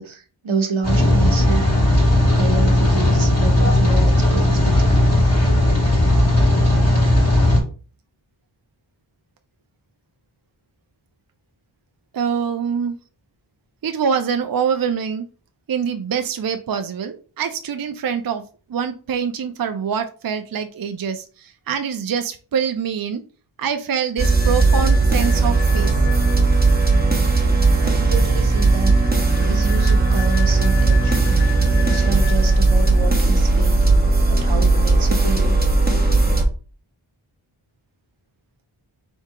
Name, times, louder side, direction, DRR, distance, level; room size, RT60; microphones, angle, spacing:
voice 1, 0.0-1.6 2.3-4.9 27.8-29.0 29.4-31.4 31.9-34.0 34.3-35.6, right 4 dB, 75° right, 5 dB, 0.9 m, -28 dB
Rain, 0.8-7.6, left 1 dB, 30° left, 1.7 m, -16 dB
voice 2, 12.1-13.0 13.8-15.2 15.7-18.4 18.7-23.2 23.6-26.0, right 7 dB, 50° right, 8 dB, 0.5 m, -24 dB
sound 1, 24.2-36.4, right 3 dB, 20° right, 1.1 m, -17 dB
3.5 x 2.7 x 4.7 m, 0.37 s
wide cardioid pair, 50°, 48 cm